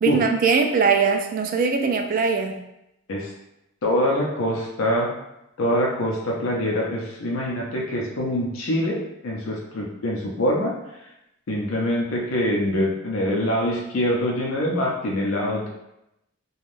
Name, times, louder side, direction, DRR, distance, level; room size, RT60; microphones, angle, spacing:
voice 1, 0.0-2.6, right 5 dB, 45° right, 4 dB, 0.3 m, -21 dB
voice 2, 3.8-5.1 5.6-10.8 11.5-15.7, left 1 dB, 80° left, -2 dB, 0.6 m, -24 dB
3.3 x 2.3 x 2.5 m, 0.86 s
head